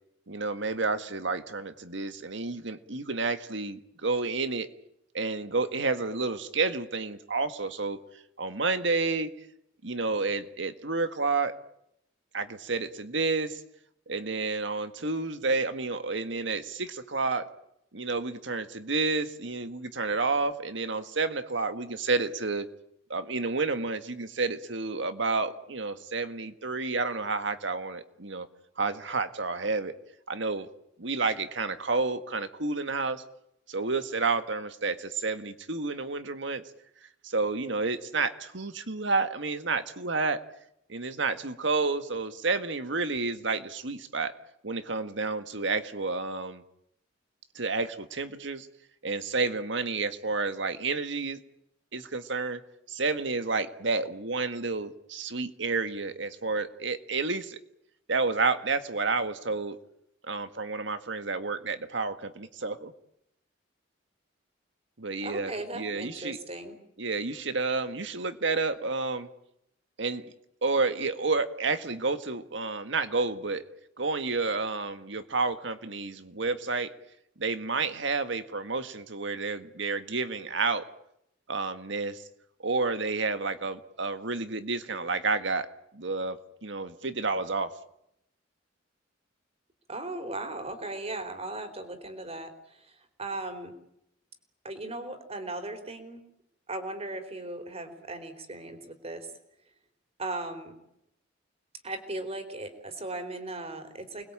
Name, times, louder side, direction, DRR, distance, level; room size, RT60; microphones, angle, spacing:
voice 1, 0.3-4.7 5.1-8.0 8.4-9.3 9.8-11.5 12.3-13.6 14.1-17.5 17.9-22.7 23.1-28.5 28.8-29.9 30.3-30.7 31.0-33.2 33.7-36.6 37.2-40.4 40.9-44.3 44.6-46.6 47.6-48.7 49.0-51.4 51.9-52.6 52.9-57.6 58.1-59.8 60.3-62.9 65.0-66.4 67.0-69.3 70.0-70.2 70.6-73.6 74.0-76.9 77.4-80.9 81.5-82.2 82.6-85.7 85.9-87.7, right 3 dB, 70° right, 10 dB, 1.8 m, -30 dB
voice 2, 65.2-66.8 89.9-92.9 93.2-93.7 94.6-96.2 96.7-99.3 100.2-100.7 101.8-104.3, right 2 dB, 35° right, 7 dB, 4.2 m, -37 dB
29.0 x 21.0 x 8.9 m, 0.79 s
head